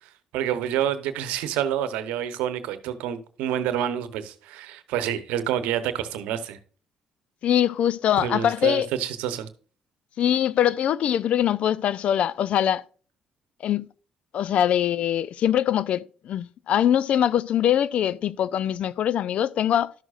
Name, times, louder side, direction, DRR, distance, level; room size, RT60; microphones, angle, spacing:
voice 1, 0.3-6.6 8.2-9.5, right 10 dB, 85° right, 0.9 m, -28 dB
voice 2, 7.4-8.9 10.2-12.8 13.6-13.9 14.3-19.9, left 10 dB, 65° left, 0.4 m, -23 dB
12.5 x 6.2 x 2.4 m
supercardioid pair, 65°, 2 cm